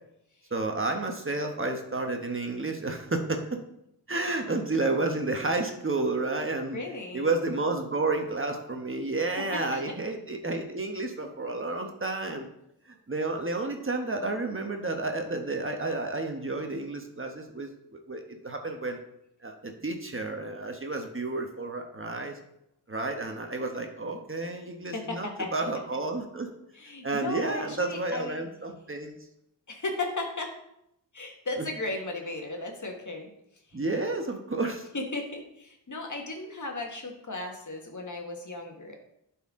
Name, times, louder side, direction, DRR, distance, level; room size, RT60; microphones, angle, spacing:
voice 1, 0.5-3.6 4.1-6.8 7.1-12.5 13.1-17.7 18.1-19.0 19.4-22.4 22.9-26.5 27.0-29.2 33.7-34.9, right 2 dB, 30° right, 3 dB, 1.1 m, -31 dB
voice 2, 6.7-7.3 9.4-9.6 24.9-25.6 26.7-28.4 29.7-30.5 31.1-33.3 33.7-33.8 34.9-39.0, left 2 dB, 45° left, 2 dB, 1.6 m, -35 dB
11.0 x 4.5 x 3.7 m, 0.79 s
cardioid pair, 65°, 41 cm